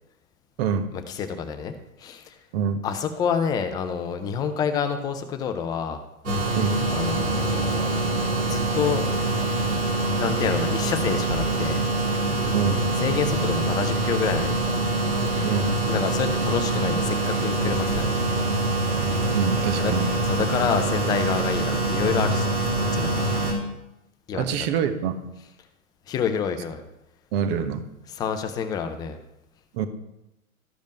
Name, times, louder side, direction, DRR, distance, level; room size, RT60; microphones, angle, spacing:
voice 1, 1.1-1.7 2.0-2.4 2.8-6.0 6.9-7.9 8.4-9.0 10.2-11.8 12.1-12.2 13.0-14.6 15.9-18.2 19.8-23.3 24.3-24.4 26.1-26.8 28.1-29.2, left 7 dB, 10° left, 7 dB, 0.4 m, -28 dB
sound 1, 6.2-23.5, right 2 dB, 85° right, 3.3 m, -24 dB
voice 2, 12.5-13.0 15.4-15.8 19.3-20.1 24.3-25.2 27.3-27.8 29.7-29.9, right 7 dB, 45° right, 9 dB, 1.3 m, -25 dB
13.0 x 5.2 x 5.2 m, 0.89 s
hypercardioid pair, 120°, 42 cm